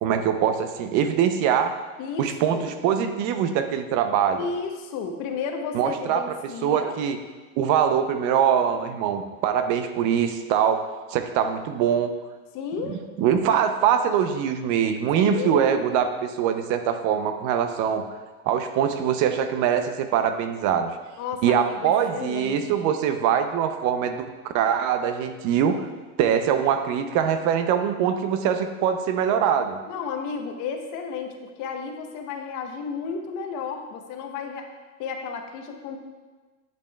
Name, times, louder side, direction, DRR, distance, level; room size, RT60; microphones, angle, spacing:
voice 1, 0.0-1.8 2.2-4.4 5.7-6.2 6.6-7.2 7.6-12.1 12.9-18.0 18.5-20.9 21.4-24.3 24.5-25.8 26.2-29.8, right 8 dB, 45° right, 8 dB, 0.6 m, -23 dB
voice 2, 2.0-2.8 4.4-6.9 12.5-13.0 15.1-15.8 21.2-23.0 29.9-34.7 35.0-36.0, left 5 dB, 45° left, 4 dB, 0.9 m, -33 dB
10.5 x 5.2 x 2.3 m, 1.3 s
hypercardioid pair, 110°, 42 cm